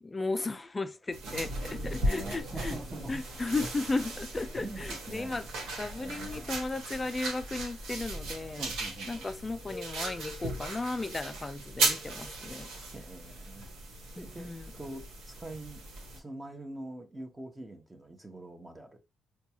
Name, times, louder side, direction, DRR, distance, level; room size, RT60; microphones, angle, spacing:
voice 1, 0.0-2.8 3.1-5.5 5.8-8.6 9.1-12.7 14.1-14.7, left 3 dB, 20° left, 0.4 m, -35 dB
sound 1, 1.1-16.2, right 2 dB, 85° right, 1.2 m, -37 dB
sound 2, 1.4-12.8, left 1 dB, 55° right, 1.2 m, -52 dB
voice 2, 1.7-3.2 4.6-5.5 5.9-6.6 8.6-9.1 12.9-13.7 14.2-15.8 16.1-19.0, right 2 dB, 15° right, 0.8 m, -44 dB
4.5 x 2.3 x 2.8 m
cardioid pair, 90°, 0 cm